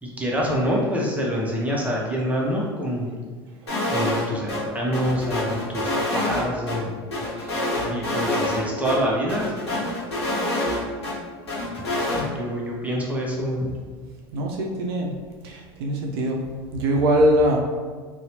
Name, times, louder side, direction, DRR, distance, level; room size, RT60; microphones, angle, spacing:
voice 1, 0.0-3.1 3.9-7.0 7.3-9.5 10.8-11.2 12.1-13.7, equal, 10° right, -3 dB, 0.5 m, -26 dB
sound 1, 3.7-4.2 4.5-4.6 4.9-6.8 7.1-8.6 8.8-9.0 9.3-11.1 11.5-12.2, left 1 dB, 85° left, 0.7 m, -26 dB
voice 2, 14.3-15.1 15.4-16.4 16.7-17.6, equal, 65° right, 0 dB, 0.4 m, -22 dB
2.6 x 2.0 x 2.8 m, 1.5 s
hypercardioid pair, 75°, 13 cm